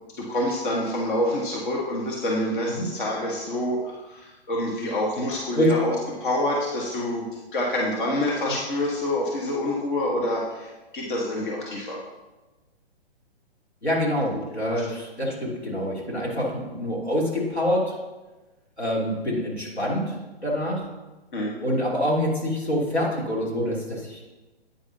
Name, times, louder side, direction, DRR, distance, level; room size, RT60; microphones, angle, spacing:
voice 1, 0.2-5.9 6.2-12.0 14.7-14.9 21.3-21.5, left 1 dB, 50° left, -2 dB, 1.5 m, -27 dB
voice 2, 13.8-17.9 18.8-20.1 20.4-20.8 21.6-24.2, equal, 85° left, -4 dB, 3.1 m, -26 dB
9.5 x 9.0 x 2.8 m, 1.2 s
figure-of-eight pair, 125°, 32 cm